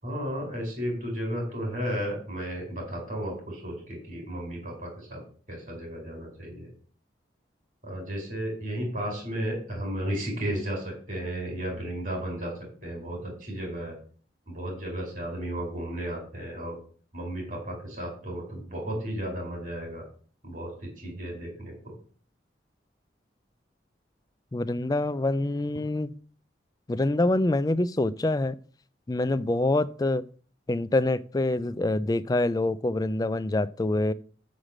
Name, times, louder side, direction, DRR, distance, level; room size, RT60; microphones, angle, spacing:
voice 1, 0.0-5.2 5.5-6.7 7.8-12.5 12.8-14.0 14.5-16.7 17.1-20.1 20.4-21.7, right 1 dB, 45° right, 4.6 m, -33 dB
voice 2, 24.5-26.1 26.9-28.6 29.1-30.3 30.7-34.1, left 2 dB, 20° left, 0.3 m, -26 dB
6.5 x 6.2 x 7.4 m
head